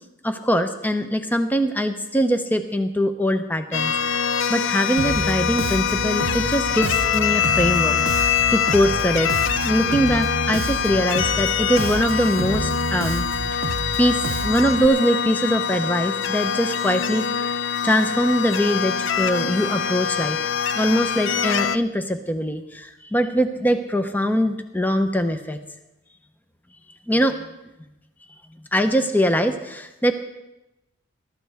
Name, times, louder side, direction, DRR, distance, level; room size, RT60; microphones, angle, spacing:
voice 1, 0.2-9.3 9.6-13.2 13.5-13.6 14.0-20.4 20.7-25.6 27.1-27.4 28.7-30.1, equal, 10° left, 7 dB, 0.7 m, -22 dB
sound 1, 3.7-21.8, left 7 dB, 65° left, 0.5 m, -24 dB
Bass guitar, 5.0-14.9, right 3 dB, 75° right, 0.6 m, -30 dB
20.5 x 13.0 x 3.5 m, 0.95 s
head